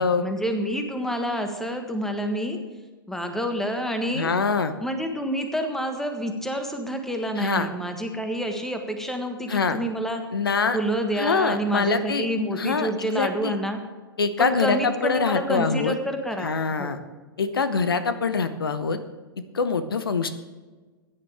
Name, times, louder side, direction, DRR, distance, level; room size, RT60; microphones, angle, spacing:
voice 1, 0.0-2.6 3.1-4.3 4.8-10.2 10.7-13.8 14.4-17.0, equal, 5° left, 5 dB, 1.5 m, -28 dB
voice 2, 4.1-4.7 7.4-7.7 9.5-9.8 10.3-10.8 11.2-12.3 12.6-13.6 14.2-15.9 16.4-17.0 17.4-19.0 19.5-20.3, left 5 dB, 75° left, 10 dB, 0.9 m, -24 dB
16.0 x 9.8 x 3.5 m, 1.3 s
figure-of-eight pair, 105°, 12 cm